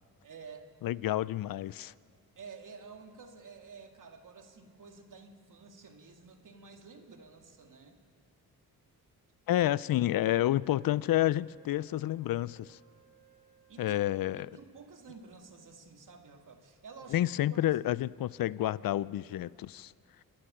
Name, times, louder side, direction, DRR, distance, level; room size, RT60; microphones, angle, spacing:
voice 1, 0.2-0.7 2.4-8.0 9.6-9.7 13.7-14.0 14.3-17.6, right 5 dB, 55° right, 5 dB, 2.2 m, -51 dB
voice 2, 0.8-1.9 9.5-12.8 13.8-14.5 17.1-19.9, left 14 dB, 65° left, 20 dB, 0.5 m, -29 dB
Wind instrument woodwind instrument, 10.1-14.5, right 9 dB, 20° right, 6.5 m, -63 dB
27.5 x 11.5 x 8.9 m, 2.4 s
cardioid pair, 85°, 37 cm